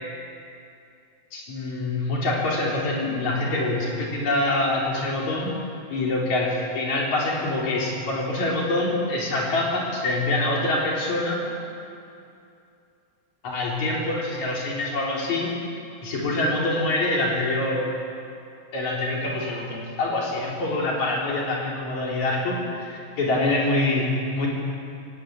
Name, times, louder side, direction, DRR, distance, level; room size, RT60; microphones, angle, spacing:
voice 1, 1.3-5.5 5.9-11.4 13.4-15.5 16.0-17.8 18.7-22.6 22.9-24.5, left 2 dB, 70° left, -4 dB, 5.3 m, -25 dB
18.5 x 17.5 x 8.5 m, 2.5 s
omnidirectional pair, 3.4 m